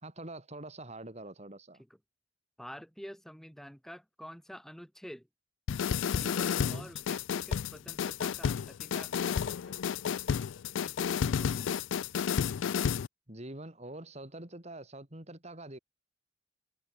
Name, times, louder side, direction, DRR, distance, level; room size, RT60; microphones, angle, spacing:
voice 1, 0.0-1.8 6.6-6.9 13.3-15.8, right 1 dB, 35° right, 3.3 m, -45 dB
voice 2, 2.6-5.3 6.1-9.8 10.8-11.7, equal, ahead, 4.5 m, -48 dB
sound 1, 5.7-13.1, left 7 dB, 80° left, 0.4 m, -31 dB
head